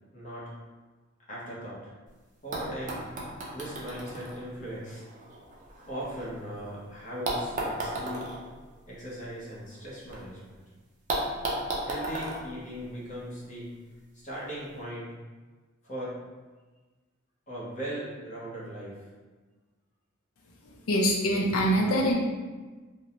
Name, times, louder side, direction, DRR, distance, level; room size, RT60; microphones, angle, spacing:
voice 1, 0.1-0.5 1.3-1.8 2.4-3.2 3.5-5.1 5.9-8.3 8.9-10.6 11.8-13.7 14.1-15.1 15.8-16.2 17.5-19.1, equal, 35° left, -7 dB, 0.8 m, -38 dB
sound 1, 2.1-2.2 2.5-6.6 7.2-10.2 10.5-10.6 11.1-13.5 14.5-14.6, right 2 dB, 35° right, 0.5 m, -35 dB
voice 2, 20.9-22.1, equal, 85° left, 0 dB, 0.5 m, -24 dB
2.6 x 2.1 x 2.8 m, 1.3 s
head